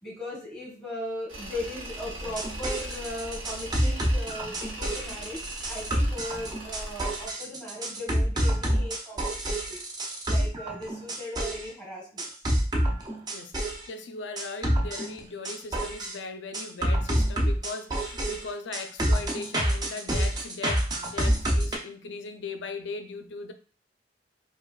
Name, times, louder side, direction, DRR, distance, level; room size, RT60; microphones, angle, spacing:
voice 1, 0.0-9.9 10.3-12.3, left 1 dB, 5° left, -3 dB, 1.5 m, -38 dB
Tools, 1.3-7.3, right 1 dB, 85° right, 1.0 m, -40 dB
sound 1, 2.2-11.7 12.2-13.9 14.4-16.2 16.5-21.8, right 1 dB, 20° right, 0.5 m, -27 dB
voice 2, 13.3-23.5, left 4 dB, 70° left, 7 dB, 0.5 m, -39 dB
4.9 x 2.3 x 2.3 m, 0.38 s
head